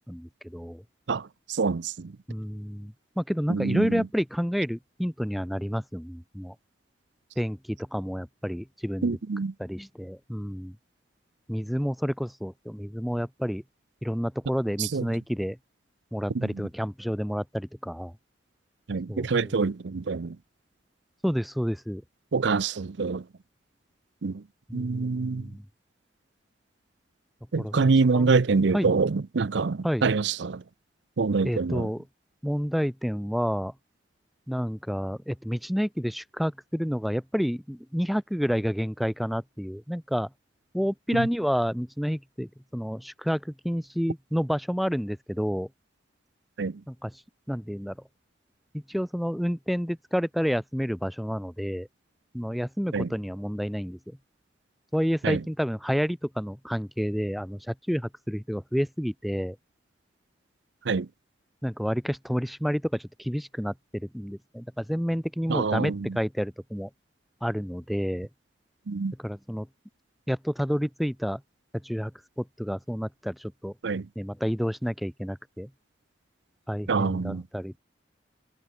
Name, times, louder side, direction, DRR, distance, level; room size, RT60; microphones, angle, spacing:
voice 1, 0.1-0.8 2.3-6.5 7.4-9.2 9.6-10.7 11.5-13.6 14.0-15.6 16.1-18.1 19.1-19.5 21.2-22.0 24.7-25.6 27.6-27.9 28.1-28.3 28.7-29.1 29.8-30.1 31.4-32.0 32.4-33.7 34.5-40.3 40.7-45.7 46.9-47.1 47.5-47.9 48.7-51.9 52.3-54.2 54.9-59.6 61.6-66.9 67.4-68.3 69.2-69.7 70.3-71.4 71.8-72.1 72.4-73.7 74.2-75.7 76.7-77.7, equal, ahead, 1.1 m, -29 dB
voice 2, 1.5-2.1 3.5-4.0 9.0-9.5 14.8-15.0 16.3-16.5 18.9-20.4 22.3-23.2 24.2-24.4 24.7-25.5 27.5-30.6 31.2-31.9 41.1-41.3 46.6-46.8 52.9-53.1 55.2-55.4 60.9-61.1 65.5-66.1 68.9-69.1 73.8-74.0 76.9-77.4, right 4 dB, 75° right, 0.6 m, -26 dB
head